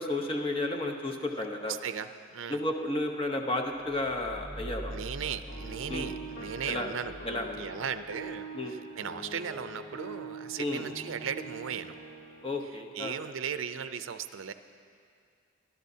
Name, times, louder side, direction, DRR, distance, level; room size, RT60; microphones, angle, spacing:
voice 1, 0.0-1.8 2.5-5.0 5.9-6.1 6.7-6.9 7.2-7.5 8.5-8.7 10.6-10.9 12.4-13.2, left 2 dB, 25° left, 3 dB, 0.9 m, -32 dB
voice 2, 1.7-2.6 4.9-7.2 7.6-12.0 12.6-14.5, right 7 dB, 75° right, 11 dB, 0.5 m, -37 dB
sound 1, 3.8-8.4, right 1 dB, 10° left, 1.4 m, -44 dB
sound 2, 5.3-12.5, right 3 dB, 65° left, 2.7 m, -44 dB
24.0 x 12.0 x 2.8 m, 2.3 s
head